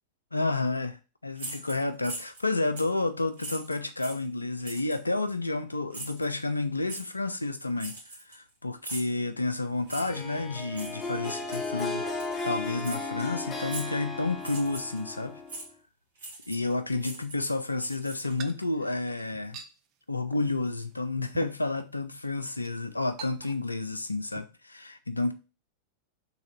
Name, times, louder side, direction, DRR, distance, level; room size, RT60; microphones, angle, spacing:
voice 1, 0.3-12.1 12.4-15.4 16.5-19.6 20.1-25.3, left 2 dB, 80° left, 0.4 m, -30 dB
sound 1, 1.4-2.4 2.8-3.0 3.4-4.3 4.6-5.0 5.9-6.3 6.9-7.1 7.8-8.5 8.8-9.2 9.9-10.2 10.7-10.9 11.5-11.8 12.2-12.3 12.8-13.0 13.7-14.0 14.4-15.0 15.5-15.7 16.2-16.7 17.0-18.5, right 2 dB, 60° right, 1.3 m, -41 dB
Harp, 9.9-15.7, left 3 dB, 20° left, 0.7 m, -35 dB
sound 2, 18.2-19.7 20.3-20.6 20.9-21.0 21.3-21.9 22.4-22.7 23.2-23.8 24.1-24.5, right 8 dB, 40° right, 0.4 m, -46 dB
3.3 x 2.7 x 4.5 m
figure-of-eight pair, 90°, 0 cm